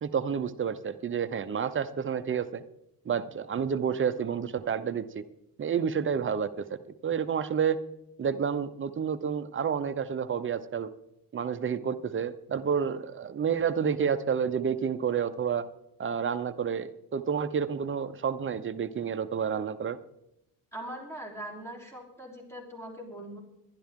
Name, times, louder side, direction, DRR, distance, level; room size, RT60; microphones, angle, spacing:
voice 1, 0.0-2.6 3.1-5.2 5.6-7.8 8.2-10.9 11.3-15.6 16.0-20.0, right 7 dB, 35° right, 11 dB, 0.7 m, -30 dB
voice 2, 20.7-23.4, right 1 dB, 5° left, 0 dB, 3.5 m, -41 dB
22.0 x 11.5 x 3.7 m, 0.84 s
cardioid pair, 150°, 38 cm